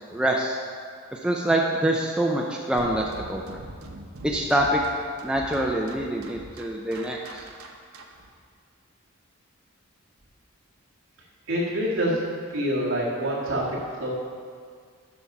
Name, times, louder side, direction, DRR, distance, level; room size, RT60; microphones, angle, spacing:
voice 1, 0.1-0.6 1.1-3.6 4.2-4.8 5.2-7.4, right 1 dB, 5° right, -1 dB, 0.4 m, -25 dB
sound 1, 2.8-8.3, right 2 dB, 85° right, 0.8 m, -42 dB
voice 2, 11.5-14.1, equal, 60° right, -5 dB, 1.9 m, -26 dB
8.5 x 5.9 x 5.3 m, 2.1 s
head